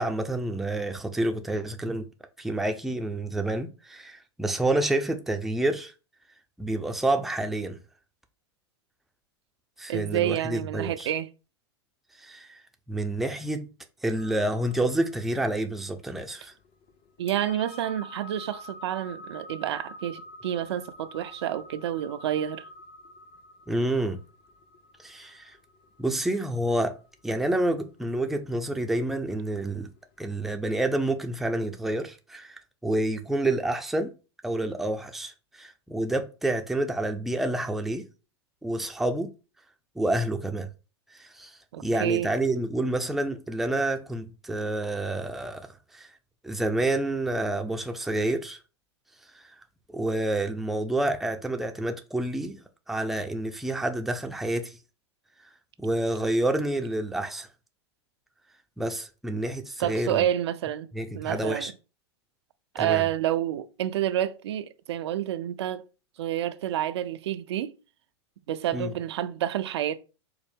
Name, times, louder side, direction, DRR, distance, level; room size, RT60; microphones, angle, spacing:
voice 1, 0.0-2.1 2.4-5.9 6.6-7.8 9.8-11.1 12.2-12.6 12.9-13.7 14.0-16.5 23.7-24.2 25.0-25.6 26.0-27.0 27.2-29.9 30.2-34.1 34.4-38.1 38.6-39.3 40.0-40.7 41.1-46.1 46.4-48.6 49.3-49.5 49.9-52.6 52.9-54.8 55.8-57.5 58.8-60.2 60.9-61.7 62.8-63.0 68.7-68.9, right 1 dB, ahead, 0.4 m, -28 dB
voice 2, 9.9-11.3 17.2-22.7 41.7-42.3 59.8-60.9 61.1-61.7 62.7-65.8 66.2-67.7 68.5-70.0, right 11 dB, 70° right, 0.4 m, -29 dB
sound 1, 14.2-30.5, left 1 dB, 40° left, 0.7 m, -48 dB
4.5 x 2.0 x 3.4 m
hypercardioid pair, 100°, 15 cm